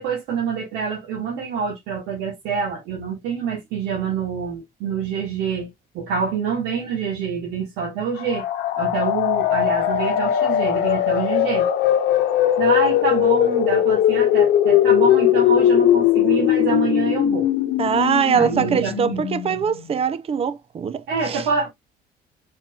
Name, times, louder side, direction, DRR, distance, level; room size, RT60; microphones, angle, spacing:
voice 1, 0.0-5.7 5.9-8.4 8.8-11.7 12.6-17.5 18.3-19.2 21.1-21.7, right 6 dB, 90° right, 1.6 m, -26 dB
sound 1, 8.2-19.9, left 11 dB, 75° left, 0.9 m, -19 dB
voice 2, 17.8-21.4, right 7 dB, 35° right, 0.5 m, -22 dB
4.6 x 4.3 x 2.3 m
cardioid pair, 110°, 17 cm